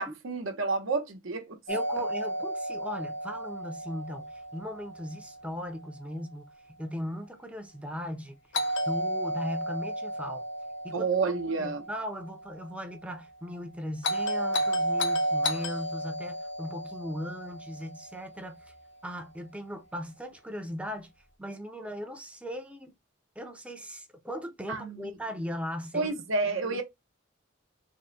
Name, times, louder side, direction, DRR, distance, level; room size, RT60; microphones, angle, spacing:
voice 1, 0.0-1.6 10.9-11.8 24.7-25.1 25.9-26.8, right 4 dB, 75° right, 0.8 m, -30 dB
Doorbell, 1.7-5.7 8.5-12.8 14.0-18.4, equal, 65° left, 0.7 m, -33 dB
voice 2, 1.7-6.5 6.8-8.4 8.9-10.5 10.8-11.3 11.6-18.7 19.0-21.1 21.4-22.9 23.4-26.2 26.6-26.8, equal, 5° right, 0.5 m, -38 dB
3.5 x 2.1 x 3.8 m
head